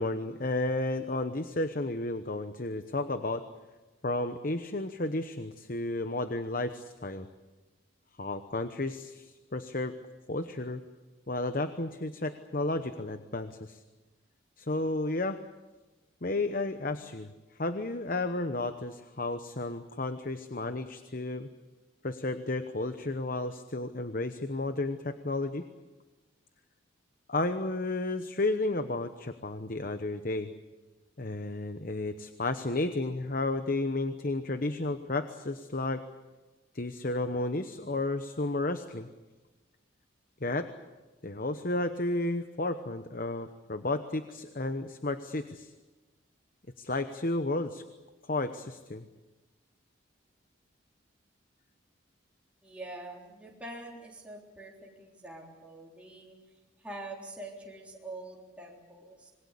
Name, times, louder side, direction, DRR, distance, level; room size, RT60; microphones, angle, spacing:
voice 1, 0.0-3.4 4.0-7.3 8.2-10.0 10.3-10.8 11.3-13.8 14.6-15.4 16.2-17.3 17.6-21.5 22.0-25.6 27.3-30.5 31.2-36.0 36.7-39.1 40.4-40.7 41.2-45.7 46.8-47.8 48.2-49.1, left 2 dB, 45° left, 9 dB, 1.0 m, -32 dB
voice 2, 52.6-56.3 56.8-59.3, right 2 dB, 5° right, -3 dB, 3.7 m, -45 dB
26.5 x 21.0 x 8.3 m, 1.2 s
head